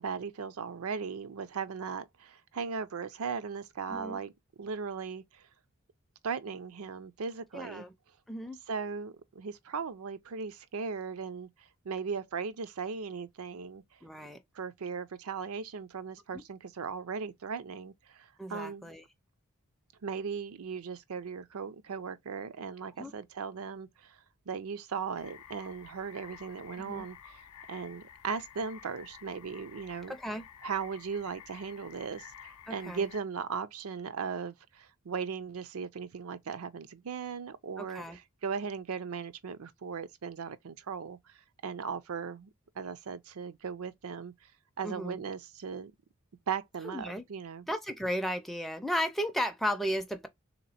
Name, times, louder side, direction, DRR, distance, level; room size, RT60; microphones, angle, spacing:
voice 1, 0.0-4.3 4.6-5.4 6.2-7.9 8.7-13.8 14.6-18.9 20.0-24.2 24.5-30.1 30.6-41.2 41.6-44.3 44.8-45.9 46.5-47.7, right 5 dB, 70° right, 0.5 m, -38 dB
voice 2, 3.9-4.2 7.5-7.9 8.3-8.6 14.0-14.4 16.3-16.4 18.4-19.0 23.0-23.1 26.8-27.0 30.1-30.5 32.7-33.1 37.8-38.2 44.8-45.2 46.8-47.2 47.7-50.3, equal, ahead, 0.4 m, -34 dB
sound 1, 25.1-33.2, left 9 dB, 85° left, 0.5 m, -52 dB
3.6 x 2.9 x 4.1 m
head